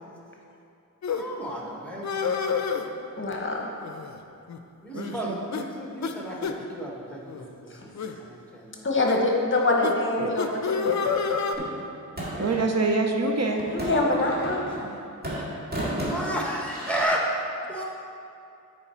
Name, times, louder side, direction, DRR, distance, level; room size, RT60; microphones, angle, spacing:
sound 1, 1.0-1.2 2.0-2.9 3.8-4.2 4.5-4.6 5.0-5.2 5.5-5.7 6.0-6.1 6.4-6.6 7.3-7.4 8.0-8.2 9.1-9.2 9.8-9.9 10.4-11.6, left 6 dB, 55° left, 0.5 m, -28 dB
voice 1, 1.2-3.3 4.8-7.5 7.8-8.9 12.3-12.6 14.6-15.0 16.0-17.3 17.7-17.8, right 1 dB, 5° left, -2 dB, 1.2 m, -33 dB
voice 2, 3.2-3.7 8.8-11.0 13.6-14.7, left 2 dB, 35° left, 0 dB, 0.9 m, -25 dB
voice 3, 4.9-5.4 10.2-10.3 12.4-13.7 15.3-15.6, right 3 dB, 50° right, 3 dB, 0.6 m, -26 dB
sound 2, 11.6-12.6 13.6-14.9 15.2-17.0, equal, 30° right, 1.9 m, -33 dB
9.6 x 4.6 x 4.4 m, 2.6 s
wide cardioid pair, 125°, 33 cm